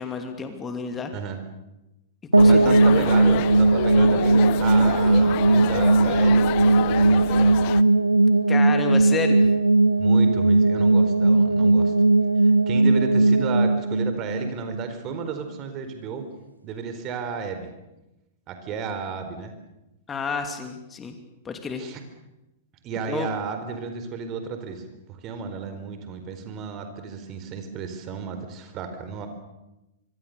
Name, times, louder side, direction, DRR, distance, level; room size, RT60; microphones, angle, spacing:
voice 1, 0.0-1.1 2.3-2.8 4.8-4.9 8.5-9.5 20.1-21.1 21.4-21.8 23.1-23.3, left 5 dB, 20° left, 6 dB, 2.9 m, -30 dB
sound 1, 2.3-15.2, right 2 dB, 85° right, 0.9 m, -18 dB
sound 2, 2.4-7.8, left 19 dB, 45° left, 0.8 m, -29 dB
voice 2, 2.4-6.4 6.9-7.6 10.0-11.9 12.4-16.3 16.6-17.7 18.5-19.5 21.8-22.0 22.8-29.3, right 5 dB, 35° right, 8 dB, 4.3 m, -33 dB
25.5 x 25.0 x 6.7 m, 0.97 s
figure-of-eight pair, 100°, 0 cm